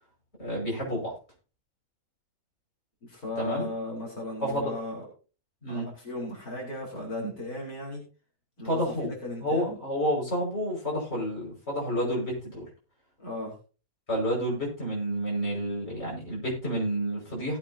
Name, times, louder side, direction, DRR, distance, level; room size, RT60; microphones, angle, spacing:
voice 1, 0.4-1.1 3.4-3.7 4.4-4.8 5.6-5.9 8.6-9.1 9.4-12.7 14.1-17.6, equal, 45° left, -3 dB, 6.1 m, -29 dB
voice 2, 3.0-5.0 5.7-8.0 8.6-9.8 13.2-13.5, left 1 dB, 75° left, -3 dB, 4.6 m, -36 dB
18.5 x 8.4 x 2.8 m, 0.34 s
omnidirectional pair, 1.6 m